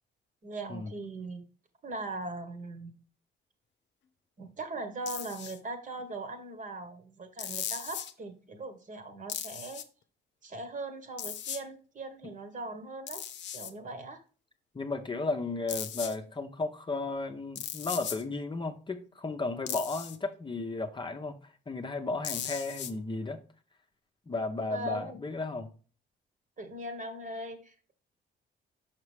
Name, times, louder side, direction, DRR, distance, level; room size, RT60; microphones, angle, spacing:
voice 1, 0.4-1.4 1.8-3.0 4.4-9.9 10.4-13.2 13.5-14.2 24.7-25.2 26.6-27.9, right 2 dB, 40° right, 1.3 m, -40 dB
sound 1, 5.1-5.6 7.4-8.1 9.3-9.8 11.2-11.6 13.1-13.7 15.7-16.2 17.6-18.2 19.7-20.2 22.2-22.9, left 9 dB, 60° left, 0.7 m, -37 dB
voice 2, 14.7-23.4 24.3-25.7, left 3 dB, 25° left, 0.7 m, -34 dB
6.0 x 5.9 x 3.3 m
cardioid pair, 90°, 20 cm